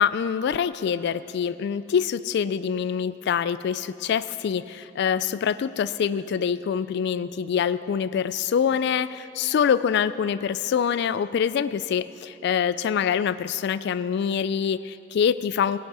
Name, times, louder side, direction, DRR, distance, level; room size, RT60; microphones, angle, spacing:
voice 1, 0.0-15.8, left 7 dB, 60° left, 15 dB, 0.3 m, -25 dB
17.0 x 11.5 x 4.8 m, 2.7 s
head